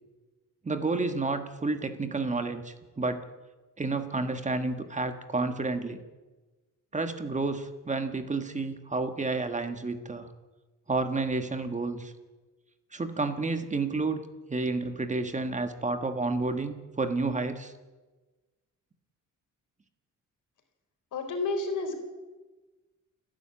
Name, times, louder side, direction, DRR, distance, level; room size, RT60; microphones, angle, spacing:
voice 1, 0.6-3.2 3.8-6.0 6.9-10.3 10.9-12.1 12.9-14.2 14.5-17.7, right 3 dB, 25° right, 8 dB, 1.5 m, -30 dB
voice 2, 21.1-21.9, left 3 dB, 75° left, 5 dB, 3.9 m, -30 dB
29.0 x 10.5 x 8.7 m, 1.2 s
cardioid pair, 125°, 31 cm